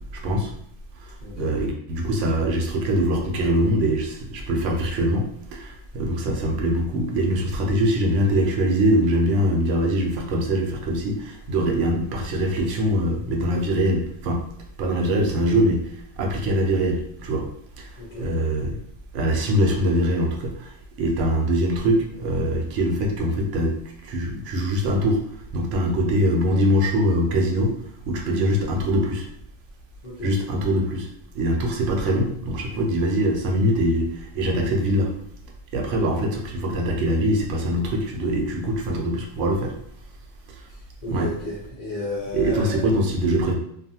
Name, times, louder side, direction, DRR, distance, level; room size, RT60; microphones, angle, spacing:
voice 1, 0.1-0.5 1.0-5.3 5.5-14.4 14.8-17.4 17.8-17.9 18.2-18.8 19.1-23.8 24.0-25.2 25.5-27.7 28.1-29.3 30.2-31.1 31.3-35.1 35.7-39.7 40.5-40.6 41.1-41.3 42.3-43.5, equal, 70° right, 1 dB, 0.9 m, -23 dB
voice 2, 1.2-1.6 18.0-18.3 30.0-30.3 35.8-36.1 41.0-42.8, left 2 dB, 45° left, -7 dB, 0.6 m, -33 dB
2.5 x 2.4 x 2.7 m, 0.70 s
omnidirectional pair, 1.3 m